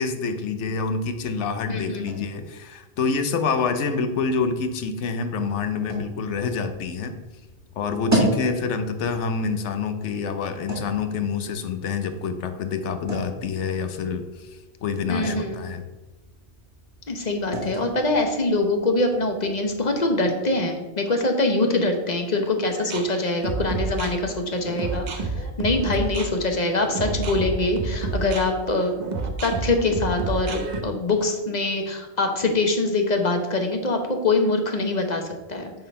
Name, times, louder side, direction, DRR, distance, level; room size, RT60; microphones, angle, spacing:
voice 1, 0.0-7.1 7.8-14.5 14.8-15.8 25.8-25.9, left 5 dB, 85° left, 8 dB, 1.1 m, -27 dB
voice 2, 1.7-2.1 15.1-15.7 17.1-29.0 29.4-35.7, left 2 dB, 40° left, 4 dB, 1.1 m, -24 dB
sound 1, 1.9-20.2, right 1 dB, 15° right, 1.9 m, -35 dB
sound 2, 22.7-30.8, right 3 dB, 45° right, 0.8 m, -29 dB
9.2 x 3.8 x 5.4 m, 1.1 s
omnidirectional pair, 1.2 m